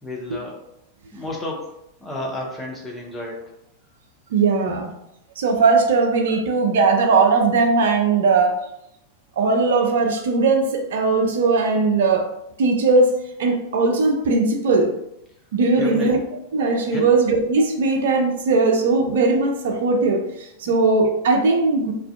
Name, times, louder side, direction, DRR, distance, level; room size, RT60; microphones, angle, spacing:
voice 1, 0.0-0.6 1.1-1.7 2.0-3.5 15.7-16.1 16.9-17.0 20.6-20.7, left 1 dB, 10° left, -2 dB, 0.7 m, -31 dB
voice 2, 4.3-4.9 5.4-8.5 9.4-12.2 12.6-14.9 15.5-16.2 16.5-21.9, right 3 dB, 60° right, 3 dB, 0.4 m, -19 dB
2.4 x 2.1 x 2.5 m, 0.81 s
figure-of-eight pair, 90°, 0 cm